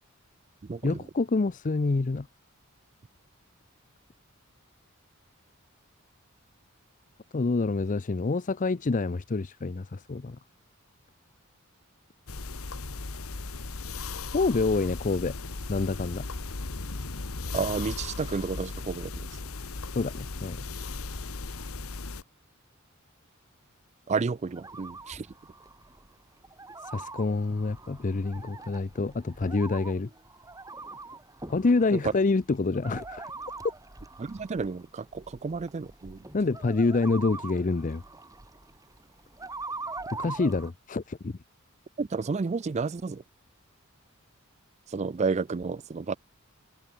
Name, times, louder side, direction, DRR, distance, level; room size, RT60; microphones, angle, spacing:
voice 1, 0.8-2.3 7.3-10.4 14.3-15.3 15.7-16.3 19.9-20.6 26.9-30.1 31.5-33.3 36.3-38.0 40.1-41.4, left 3 dB, 35° left, 0.5 m, -27 dB
sound 1, 12.3-22.2, left 3 dB, 85° left, 1.5 m, -37 dB
voice 2, 17.5-19.1 24.1-25.2 34.2-36.2 42.0-43.2 44.9-46.2, right 4 dB, 30° right, 0.4 m, -31 dB
sound 2, 24.5-40.7, right 3 dB, 15° right, 1.7 m, -43 dB
head